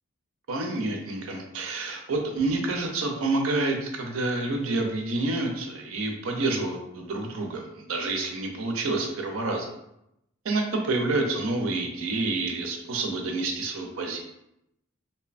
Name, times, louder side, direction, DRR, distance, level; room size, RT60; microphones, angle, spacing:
voice 1, 0.5-9.7 10.4-14.2, right 2 dB, 80° right, 3 dB, 0.5 m, -28 dB
2.7 x 2.1 x 2.4 m, 0.82 s
head